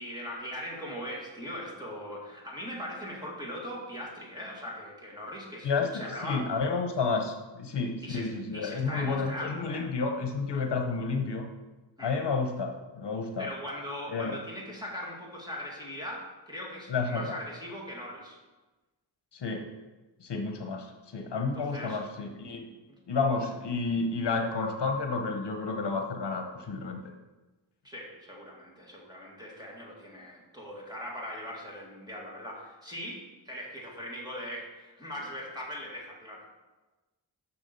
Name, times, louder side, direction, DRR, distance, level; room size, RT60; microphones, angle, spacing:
voice 1, 0.0-6.6 8.0-9.9 12.0-12.2 13.4-18.4 21.5-22.0 22.9-23.0 27.8-36.5, equal, 10° right, -3 dB, 2.3 m, -40 dB
voice 2, 5.6-11.5 12.0-13.5 14.1-14.4 16.9-17.4 19.3-19.7 20.2-22.7 23.1-27.0, left 4 dB, 65° left, 4 dB, 1.0 m, -31 dB
7.1 x 6.2 x 6.9 m, 1.2 s
wide cardioid pair, 145°, 45 cm